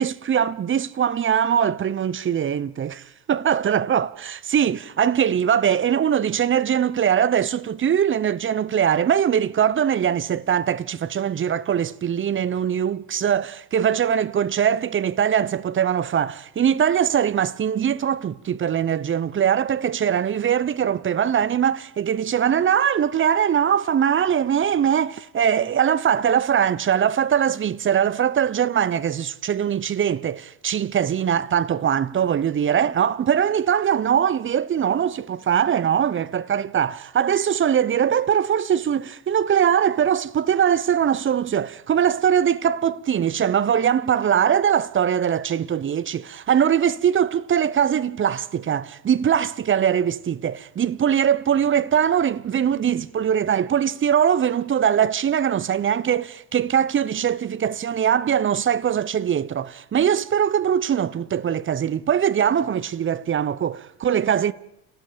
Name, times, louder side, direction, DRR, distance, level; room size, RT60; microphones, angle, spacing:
voice 1, 0.0-64.5, right 8 dB, 25° right, 0.8 m, -21 dB
30.0 x 17.5 x 5.2 m
hypercardioid pair, 70°, 49 cm